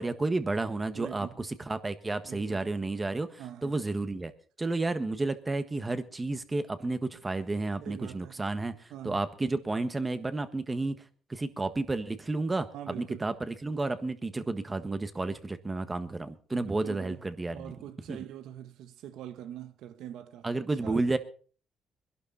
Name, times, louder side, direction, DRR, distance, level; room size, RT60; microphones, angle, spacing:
voice 1, 0.0-4.3 4.6-8.7 9.0-11.0 11.3-17.7 18.1-18.2 20.4-21.2, right 2 dB, 20° right, 1.5 m, -31 dB
voice 2, 0.9-1.4 2.2-2.6 3.4-3.8 7.8-8.4 8.9-9.2 12.7-13.3 16.5-21.1, right 11 dB, 85° right, 1.2 m, -44 dB
21.5 x 11.5 x 4.2 m
cardioid pair, 90°, 0 cm